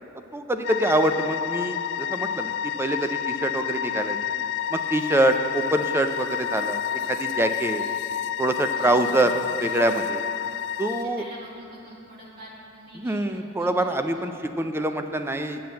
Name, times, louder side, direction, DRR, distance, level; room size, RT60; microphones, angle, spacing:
voice 1, 0.1-2.5 2.8-4.2 4.7-6.8 7.1-7.8 8.4-10.2 10.8-11.2 12.9-15.7, right 1 dB, 10° right, 7 dB, 0.4 m, -25 dB
sound 1, 0.6-11.0, left 9 dB, 55° left, 0.3 m, -29 dB
voice 2, 8.7-9.4 10.9-14.7, right 1 dB, 45° right, -5 dB, 2.0 m, -46 dB
7.7 x 7.0 x 7.6 m, 2.7 s
head